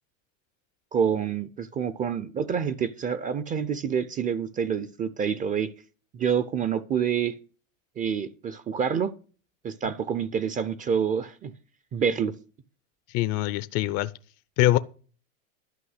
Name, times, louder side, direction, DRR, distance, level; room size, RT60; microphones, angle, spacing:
voice 1, 0.9-5.7 6.1-7.4 8.0-9.1 9.6-11.5 11.9-12.3, right 7 dB, 20° right, 0.5 m, -27 dB
voice 2, 13.1-14.1 14.6-14.8, left 16 dB, 40° left, 0.5 m, -23 dB
11.5 x 5.4 x 8.0 m
supercardioid pair, 130°, 40 cm